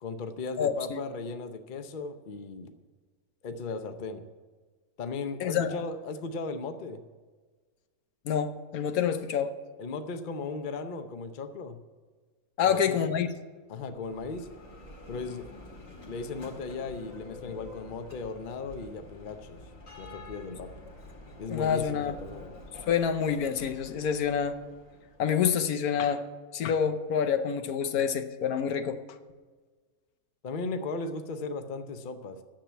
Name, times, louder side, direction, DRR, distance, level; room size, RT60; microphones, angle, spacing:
voice 1, 0.0-2.7 3.4-4.2 5.0-7.0 9.8-11.8 12.6-13.1 13.7-14.5 15.1-15.5 16.1-19.6 20.0-20.7 21.4-22.5 30.4-32.4, left 4 dB, 40° left, 8 dB, 0.8 m, -36 dB
voice 2, 0.6-1.0 5.4-5.8 8.3-9.5 12.6-13.3 21.5-22.2 22.9-24.6 25.2-26.2 26.5-29.0, left 7 dB, 80° left, 9 dB, 1.3 m, -27 dB
Bell, 13.7-25.5, left 2 dB, 60° left, 2.4 m, -48 dB
10.0 x 7.3 x 8.4 m, 1.4 s
omnidirectional pair, 1.5 m